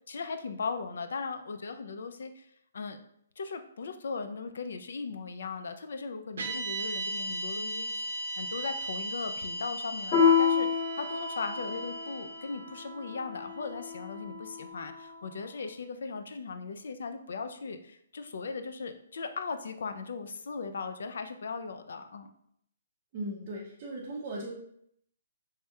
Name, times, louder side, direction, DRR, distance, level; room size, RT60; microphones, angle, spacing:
voice 1, 0.1-2.5 2.7-3.0 3.4-22.3, left 4 dB, 70° left, 8 dB, 0.3 m, -38 dB
sound 1, 6.4-14.7, right 1 dB, 70° right, 0.6 m, -38 dB
Piano, 10.1-15.1, left 6 dB, 35° left, 1.2 m, -29 dB
voice 2, 23.1-24.5, right 1 dB, 25° right, -5 dB, 0.5 m, -37 dB
3.2 x 2.8 x 2.3 m, 0.70 s
hypercardioid pair, 170°, 0 cm